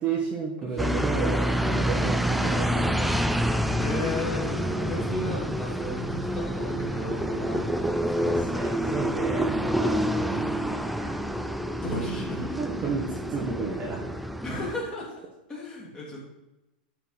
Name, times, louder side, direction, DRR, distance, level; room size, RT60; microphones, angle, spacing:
voice 1, 0.0-3.3 4.6-4.9 8.2-11.2 12.2-14.1, right 4 dB, 20° right, -1 dB, 1.3 m, -33 dB
sound 1, 0.8-14.7, equal, ahead, 0.4 m, -27 dB
voice 2, 3.8-8.4 11.8-12.6 14.4-15.2 15.5-16.2, left 2 dB, 15° left, -3 dB, 2.9 m, -34 dB
12.0 x 4.7 x 5.8 m, 0.95 s
supercardioid pair, 160°, 5 cm